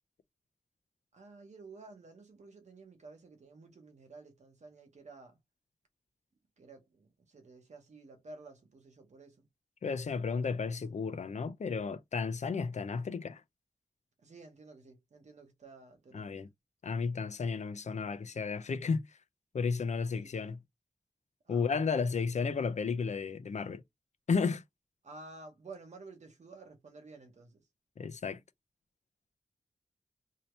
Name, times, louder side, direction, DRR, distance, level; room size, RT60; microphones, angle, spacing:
voice 1, 1.1-5.4 6.6-9.5 14.2-16.5 20.1-20.5 21.4-21.8 25.0-27.6, right 3 dB, 80° right, 1.2 m, -52 dB
voice 2, 9.8-13.4 16.1-16.5 16.8-19.2 19.5-20.6 21.5-23.8 24.3-24.6 28.0-28.4, left 5 dB, 80° left, 0.5 m, -33 dB
2.8 x 2.8 x 3.1 m
wide cardioid pair, 90°, 12 cm